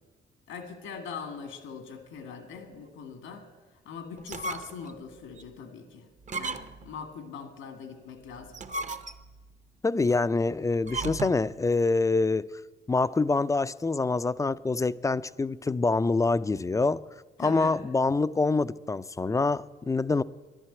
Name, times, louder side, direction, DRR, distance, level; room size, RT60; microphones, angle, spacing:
voice 1, 0.5-8.6 17.4-17.8, left 6 dB, 90° left, 2.0 m, -42 dB
sound 1, 4.2-4.9 5.4-5.5 6.2-6.9 8.4-9.4 10.8-11.5, right 3 dB, 35° right, 0.7 m, -35 dB
voice 2, 9.8-12.5 12.9-17.0 17.4-20.2, left 3 dB, 15° left, 0.3 m, -25 dB
11.0 x 11.0 x 8.7 m
cardioid pair, 90°, 20 cm